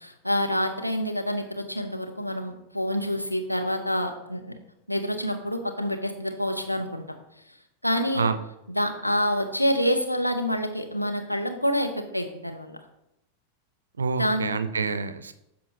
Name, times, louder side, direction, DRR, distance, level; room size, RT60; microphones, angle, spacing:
voice 1, 0.0-4.4 4.9-7.0 7.8-8.2 8.7-12.8 14.2-14.5, equal, 90° left, 4 dB, 0.8 m, -27 dB
voice 2, 14.0-15.3, right 5 dB, 75° right, 12 dB, 0.5 m, -27 dB
12.5 x 4.3 x 2.8 m, 0.84 s
figure-of-eight pair, 90°, 0 cm